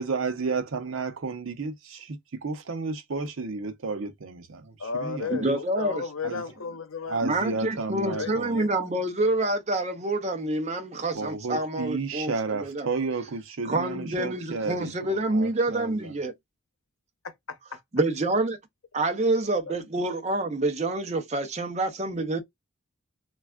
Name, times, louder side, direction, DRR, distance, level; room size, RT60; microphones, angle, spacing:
voice 1, 0.0-5.6 6.2-6.4 7.1-8.5 11.1-16.1, right 4 dB, 80° right, 0.7 m, -32 dB
voice 2, 4.8-7.2 8.1-8.7 17.2-17.8, left 5 dB, 85° left, 0.7 m, -34 dB
voice 3, 5.3-6.0 7.2-12.9 13.6-16.3 17.9-18.6 18.9-22.4, right 2 dB, 30° right, 0.5 m, -27 dB
3.3 x 2.3 x 2.3 m
head